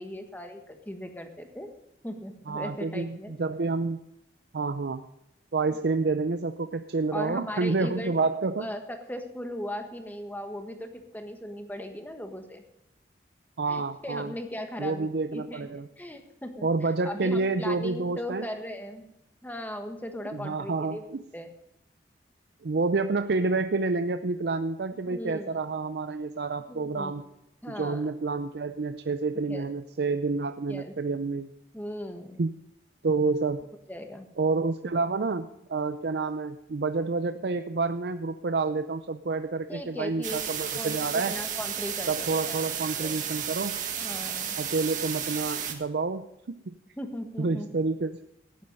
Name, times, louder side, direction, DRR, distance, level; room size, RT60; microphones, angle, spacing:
voice 1, 0.0-1.7 2.0-3.4 7.1-8.2 8.6-12.6 13.7-16.7 17.0-19.0 19.4-21.5 25.1-25.6 26.7-27.1 27.6-28.0 29.5-29.7 30.7-30.9 31.7-32.4 33.9-34.3 39.7-42.6 43.0-43.2 44.0-44.6 47.0-47.7, left 1 dB, 10° left, 5 dB, 1.4 m, -38 dB
voice 2, 2.5-4.0 4.5-5.0 5.5-8.7 13.6-14.3 14.8-15.9 16.6-18.4 20.3-21.2 22.6-27.2 27.7-31.5 32.4-32.5 33.0-33.6 34.4-41.4 42.1-43.8 44.6-46.7 47.4-48.2, right 3 dB, 70° right, 9 dB, 0.5 m, -29 dB
sound 1, 40.2-45.7, right 8 dB, 45° right, 1.7 m, -33 dB
14.5 x 11.0 x 5.4 m, 0.84 s
head